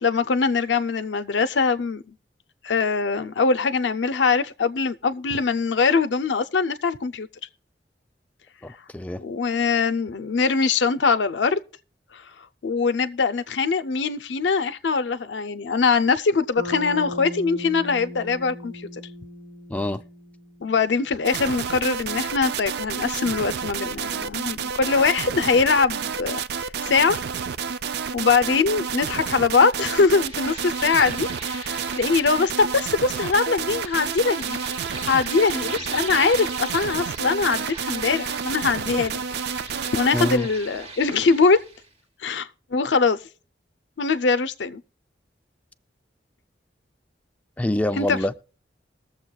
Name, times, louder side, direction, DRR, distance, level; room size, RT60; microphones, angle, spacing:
voice 1, 0.0-2.0 2.6-7.3 9.2-11.6 12.6-18.9 20.6-27.2 28.1-34.6 35.0-39.2 39.9-41.6 42.2-43.2 44.0-44.8 48.0-48.2, left 4 dB, 85° left, 0.5 m, -22 dB
voice 2, 8.6-9.2 19.7-20.0 40.1-40.5 47.6-48.3, left 1 dB, 10° left, 0.3 m, -26 dB
Bass guitar, 16.6-20.9, left 1 dB, 85° right, 1.5 m, -37 dB
sound 1, 21.3-40.4, right 6 dB, 65° right, 0.4 m, -30 dB
sound 2, 29.6-41.9, right 3 dB, 35° right, 1.1 m, -39 dB
20.5 x 7.2 x 2.3 m
head